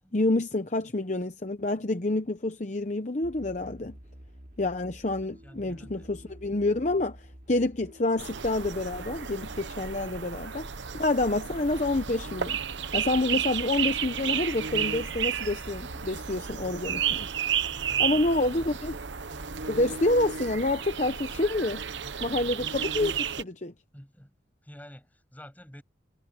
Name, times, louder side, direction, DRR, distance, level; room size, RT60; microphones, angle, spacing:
voice 1, 0.1-3.9 4.6-10.7 11.0-12.6 12.9-17.3 18.0-19.0 19.7-21.8 22.2-23.7, left 2 dB, 40° left, 0.8 m, -28 dB
sound 1, 3.2-20.9, equal, 45° right, 2.8 m, -50 dB
voice 2, 5.2-6.1 10.0-10.1 17.6-18.7 23.9-24.3 24.6-25.8, equal, 10° left, 7.3 m, -49 dB
sound 2, 8.2-23.4, right 8 dB, 75° right, 0.9 m, -32 dB
head